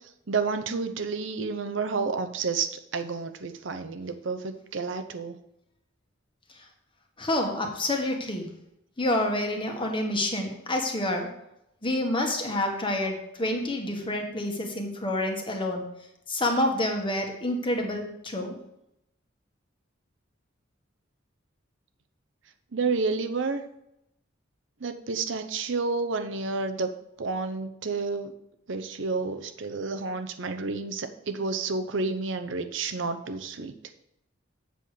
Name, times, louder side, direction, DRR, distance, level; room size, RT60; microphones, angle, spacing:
voice 1, 0.3-5.3 22.7-23.6 24.8-26.9 27.2-28.3 28.7-33.7, right 4 dB, 65° right, 8 dB, 0.7 m, -30 dB
voice 2, 7.2-8.5 9.0-11.3 11.8-15.9 16.3-18.6, left 1 dB, 25° left, 2 dB, 1.5 m, -28 dB
7.8 x 5.0 x 6.6 m, 0.82 s
head